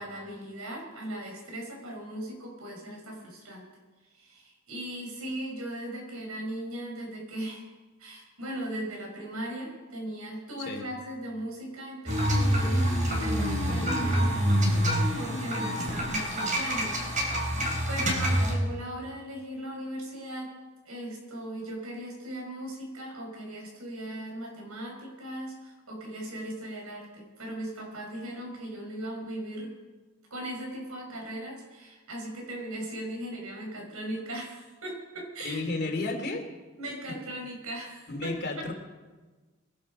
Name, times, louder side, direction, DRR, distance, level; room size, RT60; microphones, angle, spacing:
voice 1, 0.0-3.7 4.1-7.7 8.0-14.8 15.1-17.0 17.9-20.6 20.9-29.8 30.3-35.6 36.8-38.7, right 1 dB, 80° right, 0 dB, 5.5 m, -38 dB
sound 1, 12.1-18.5, equal, 35° right, 4.5 m, -26 dB
voice 2, 35.4-36.4 38.1-38.7, left 2 dB, 50° left, 2 dB, 2.8 m, -32 dB
22.0 x 11.0 x 5.2 m, 1.3 s
head